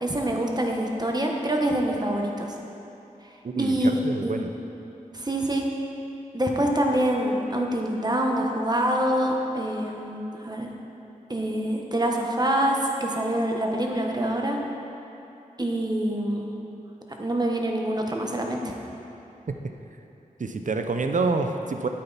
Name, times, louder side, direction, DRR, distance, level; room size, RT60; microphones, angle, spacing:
voice 1, 0.0-2.5 3.6-4.4 5.1-5.7 6.3-10.7 11.3-14.6 15.6-16.5 17.2-18.7, right 1 dB, 30° right, 1 dB, 1.2 m, -25 dB
voice 2, 3.4-4.5 20.4-21.9, right 3 dB, 60° right, 6 dB, 0.7 m, -27 dB
10.0 x 8.6 x 4.2 m, 2.9 s
wide cardioid pair, 55°, 15 cm